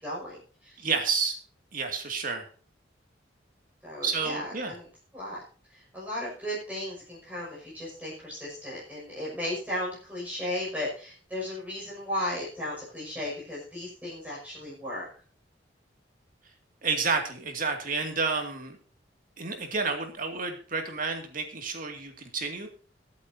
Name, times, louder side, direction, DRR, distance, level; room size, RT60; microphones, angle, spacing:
voice 1, 0.0-0.9 3.8-4.9 5.1-5.4 5.7-15.0, left 1 dB, 10° right, -6 dB, 6.3 m, -35 dB
voice 2, 0.8-1.4 1.7-2.5 4.0-4.7 16.8-18.8 19.4-22.7, right 4 dB, 50° right, 4 dB, 2.4 m, -30 dB
22.0 x 8.5 x 2.8 m, 0.41 s
head